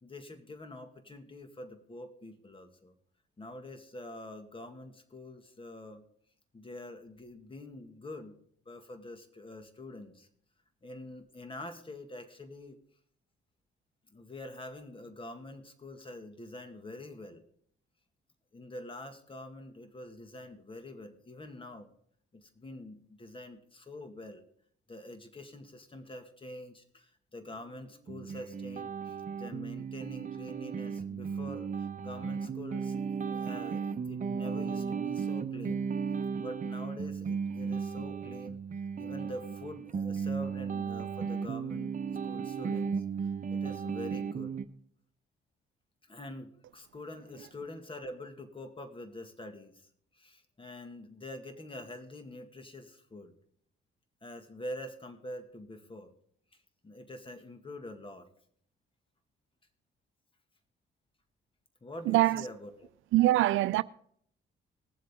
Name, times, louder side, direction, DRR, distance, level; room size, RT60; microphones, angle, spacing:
voice 1, 0.0-2.9 3.4-6.0 6.5-8.4 8.7-10.3 10.8-12.8 14.1-17.4 18.5-21.9 22.3-24.4 24.9-35.9 36.4-38.6 39.0-44.6 46.0-49.9 50.1-53.3 54.2-56.1 56.8-58.3 61.8-62.9, left 1 dB, 25° left, 2.0 m, -45 dB
sound 1, 28.1-44.6, right 6 dB, 40° right, 0.9 m, -35 dB
voice 2, 62.1-62.4 63.1-63.8, right 16 dB, 80° right, 0.5 m, -24 dB
19.5 x 7.6 x 3.7 m
cardioid pair, 90°, 20 cm